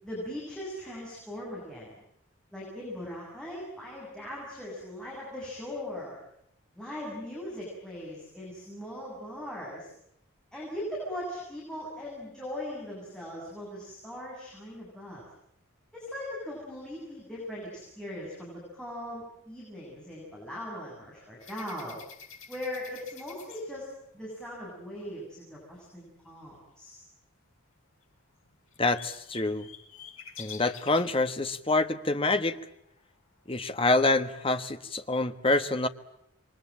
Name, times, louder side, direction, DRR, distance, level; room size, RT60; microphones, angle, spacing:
voice 1, 0.0-2.0 2.5-6.2 6.8-9.9 10.5-15.2 15.9-22.0 22.5-27.0, left 1 dB, 5° left, -5 dB, 7.9 m, -39 dB
sound 1, 21.4-24.4 28.0-28.1 28.3-31.3 33.0-33.1 33.5-34.2, left 7 dB, 70° left, 6.8 m, -48 dB
voice 2, 28.8-29.7 30.4-32.6 33.5-35.9, left 2 dB, 25° left, 9 dB, 1.3 m, -26 dB
28.0 x 23.0 x 8.9 m, 0.78 s
head